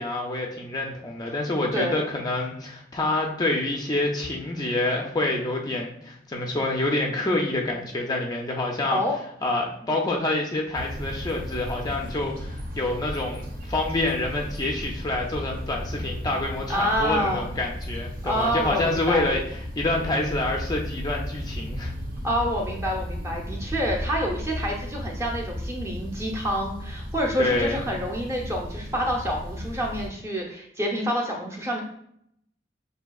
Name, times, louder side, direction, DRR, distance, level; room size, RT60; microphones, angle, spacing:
voice 1, 0.0-9.0 9.4-21.9 27.4-27.8, left 2 dB, 20° left, 0 dB, 0.4 m, -27 dB
voice 2, 1.7-2.0 8.9-9.2 16.7-17.5 18.2-19.3 22.2-31.8, equal, 15° right, -1 dB, 0.7 m, -27 dB
sound 1, 10.7-30.1, equal, 50° right, 0.7 m, -35 dB
5.8 x 2.7 x 2.3 m, 0.72 s
head